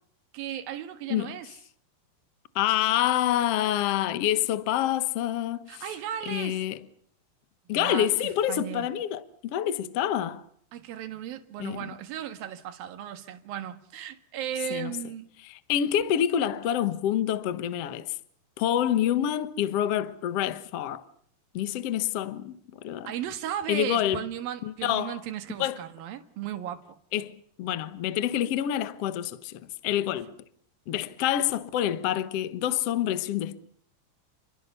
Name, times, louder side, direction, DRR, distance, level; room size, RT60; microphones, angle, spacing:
voice 1, 0.3-1.5 5.7-6.6 7.7-8.9 10.7-15.3 23.1-26.8, right 10 dB, 65° right, 3.3 m, -36 dB
voice 2, 2.5-5.8 6.3-6.8 7.7-10.4 11.6-11.8 14.7-14.9 15.5-18.1 18.6-21.0 21.5-22.6 22.8-23.1 23.7-24.3 24.6-25.2 25.6-25.8 27.1-29.5 29.8-30.3 30.9-33.6, left 11 dB, 65° left, 1.6 m, -27 dB
30.0 x 22.0 x 7.0 m
omnidirectional pair, 4.6 m